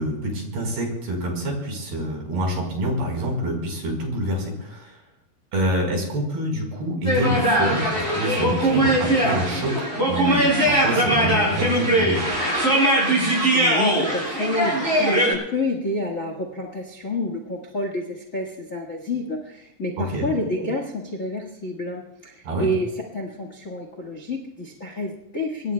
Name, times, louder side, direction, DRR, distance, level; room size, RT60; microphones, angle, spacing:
voice 1, 0.0-5.0 5.5-12.3 20.0-20.3 22.4-22.7, equal, 80° right, 1 dB, 6.5 m, -26 dB
sound 1, 7.0-15.3, right 1 dB, 20° right, 8.0 m, -21 dB
voice 2, 13.1-25.7, left 1 dB, 65° left, 3 dB, 0.8 m, -29 dB
25.5 x 22.5 x 2.3 m, 0.90 s
omnidirectional pair, 4.5 m